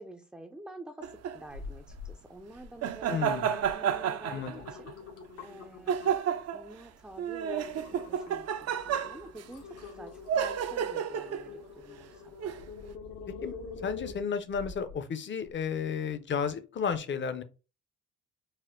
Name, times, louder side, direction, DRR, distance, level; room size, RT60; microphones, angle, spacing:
voice 1, 0.0-4.9 5.4-5.9 6.5-12.3, right 1 dB, 5° right, 3 dB, 0.4 m, -48 dB
sound 1, 1.0-1.4 2.8-4.9 5.9-6.7 7.2-9.4 10.3-11.5 12.4-12.6, right 8 dB, 55° right, 0.5 m, -31 dB
sound 2, 1.5-2.1 2.5-3.0 3.6-3.7 4.1-6.4 6.8-7.0 7.4-14.9 15.4-15.5, left 4 dB, 85° left, 1.2 m, -45 dB
voice 2, 3.1-3.5 4.3-4.5 13.4-17.4, left 6 dB, 40° left, 11 dB, 0.6 m, -33 dB
4.2 x 2.0 x 3.7 m, 0.33 s
cardioid pair, 90°, 30 cm